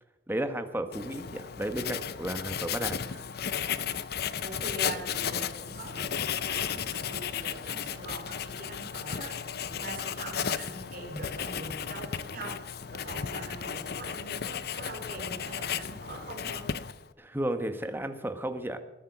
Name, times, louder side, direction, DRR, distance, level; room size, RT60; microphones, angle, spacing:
voice 1, 0.3-3.0 17.2-18.8, right 1 dB, 10° right, 8 dB, 1.3 m, -33 dB
Writing, 0.9-17.1, left 8 dB, 60° left, 0.7 m, -34 dB
voice 2, 4.4-12.6 12.9-16.7, right 2 dB, 55° right, -1 dB, 4.2 m, -42 dB
20.5 x 10.5 x 5.9 m, 1.0 s
head